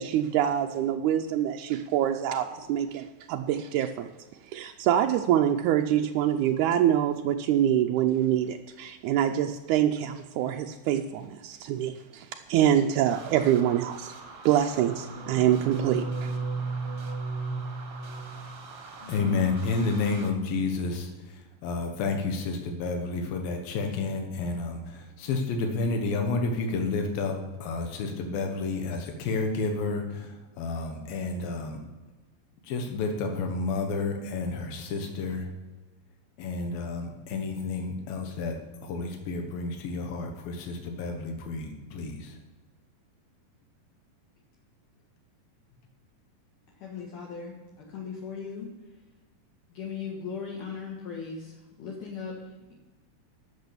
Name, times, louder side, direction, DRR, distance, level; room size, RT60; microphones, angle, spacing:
voice 1, 0.0-4.1 4.5-14.1 14.5-16.3, right 10 dB, 85° right, 4 dB, 1.7 m, -25 dB
sound 1, 13.1-20.3, right 4 dB, 60° right, 1.6 m, -45 dB
sound 2, 13.9-14.0 14.9-18.6 19.0-19.4, right 3 dB, 40° left, 2.9 m, -35 dB
voice 2, 19.1-31.8 32.6-35.5 36.4-38.5 38.8-42.4, left 3 dB, 85° left, 4 dB, 3.1 m, -30 dB
voice 3, 46.8-48.7 49.7-51.5 51.8-52.4, left 6 dB, 65° left, -3 dB, 3.0 m, -38 dB
12.5 x 6.9 x 6.8 m, 1.2 s
omnidirectional pair, 4.1 m